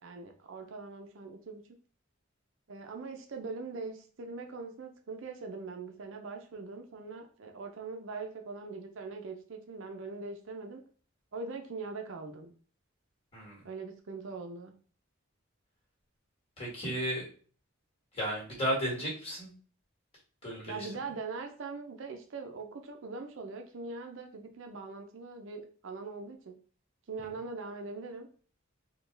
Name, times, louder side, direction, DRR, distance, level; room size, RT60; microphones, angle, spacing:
voice 1, 0.0-1.6 2.7-10.8 11.3-12.5 13.6-14.7 20.7-26.5 27.1-28.3, right 4 dB, 65° right, 4 dB, 0.5 m, -42 dB
voice 2, 16.6-17.3 18.1-19.5 20.4-20.9, equal, 30° left, -3 dB, 1.8 m, -34 dB
4.2 x 2.3 x 3.2 m, 0.41 s
head